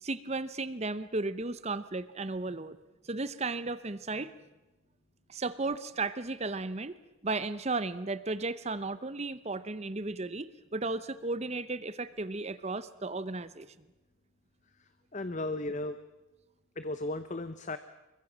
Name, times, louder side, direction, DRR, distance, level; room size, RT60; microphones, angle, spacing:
voice 1, 0.0-2.8 3.1-4.3 5.3-6.9 7.2-13.7, right 3 dB, 30° right, 15 dB, 0.8 m, -34 dB
voice 2, 15.1-16.0 16.8-17.8, left 2 dB, 35° left, 11 dB, 0.8 m, -35 dB
24.5 x 22.5 x 7.4 m, 1.0 s
head